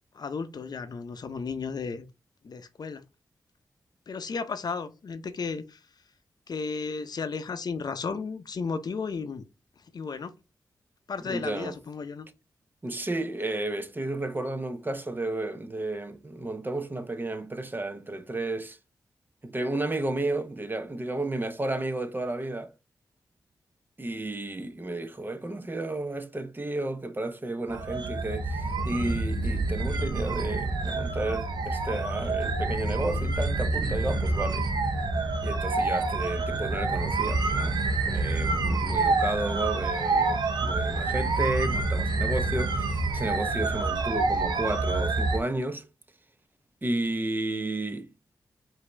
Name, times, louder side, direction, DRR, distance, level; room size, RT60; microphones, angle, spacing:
voice 1, 0.1-2.1 2.4-3.0 4.1-5.8 6.5-9.4 9.9-10.3 11.1-12.3 39.0-39.2, left 5 dB, 60° left, 0.6 m, -34 dB
voice 2, 11.2-11.8 12.8-18.8 19.4-22.7 24.0-34.7 35.4-45.9 46.8-48.1, right 2 dB, 25° right, 0.7 m, -32 dB
sound 1, 27.7-45.4, right 3 dB, 70° right, 0.8 m, -27 dB
5.0 x 2.7 x 3.3 m
cardioid pair, 50°, 8 cm